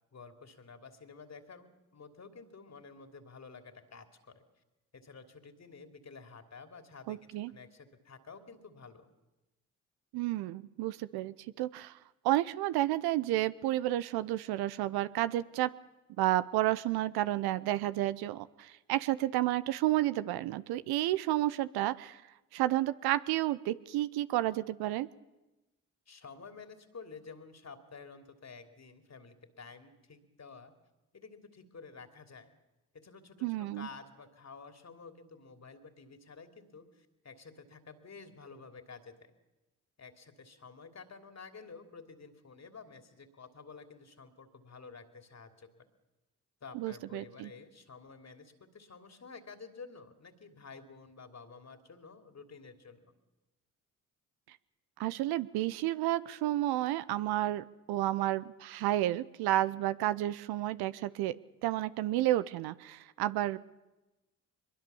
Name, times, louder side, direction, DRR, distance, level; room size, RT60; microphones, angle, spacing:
voice 1, 0.1-4.4 4.9-9.1 26.1-30.7 31.1-32.5 32.9-39.3 40.0-45.7 46.6-53.1, left 4 dB, 40° left, 6 dB, 3.1 m, -51 dB
voice 2, 7.1-7.5 10.1-12.0 12.2-15.7 16.2-22.2 22.5-25.1 33.4-33.9 46.7-47.5 55.0-61.4 61.6-63.6, right 15 dB, 70° right, 15 dB, 0.8 m, -31 dB
22.5 x 21.5 x 7.1 m, 1.1 s
hypercardioid pair, 45°, 39 cm